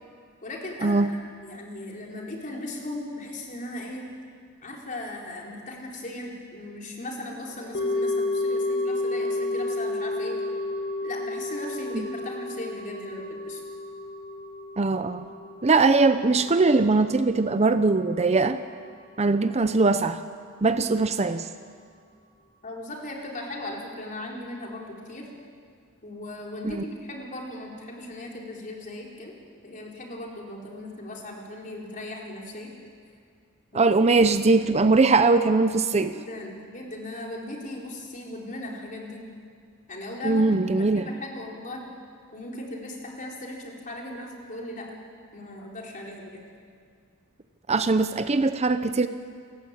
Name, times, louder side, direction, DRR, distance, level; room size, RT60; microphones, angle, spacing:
voice 1, 0.4-4.1 4.6-10.4 11.0-13.6 22.6-25.3 26.0-29.3 29.6-32.7 33.7-34.0 34.2-34.3 36.0-39.2 39.9-41.8 42.3-44.9 45.3-46.4, left 1 dB, 40° left, -1 dB, 4.2 m, -38 dB
sound 1, 7.7-18.0 18.3-18.4, left 2 dB, 55° left, 3.1 m, -31 dB
voice 2, 14.8-15.3 15.6-18.6 19.2-20.2 20.6-21.5 26.6-26.8 33.7-36.1 40.2-41.1 47.7-49.1, right 3 dB, 30° right, 11 dB, 0.6 m, -21 dB
29.0 x 14.5 x 8.9 m, 2.2 s
head